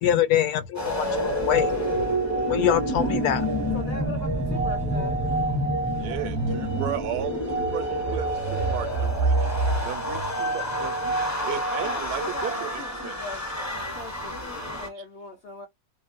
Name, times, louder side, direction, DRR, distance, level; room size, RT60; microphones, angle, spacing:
voice 1, 0.0-1.7 2.5-3.5, left 10 dB, 80° left, 1.1 m, -24 dB
sound 1, 0.7-14.9, equal, 20° left, 0.4 m, -30 dB
sound 2, 1.1-13.9, right 3 dB, 40° right, 0.5 m, -32 dB
sound 3, 3.2-11.2, right 3 dB, 70° right, 0.9 m, -31 dB
voice 2, 3.7-5.7 11.7-15.7, left 2 dB, 60° left, 0.6 m, -40 dB
voice 3, 6.0-9.5 9.8-11.2 11.4-13.2 15.0-15.1, right 10 dB, 85° right, 1.2 m, -35 dB
2.9 x 2.1 x 2.4 m
omnidirectional pair, 1.7 m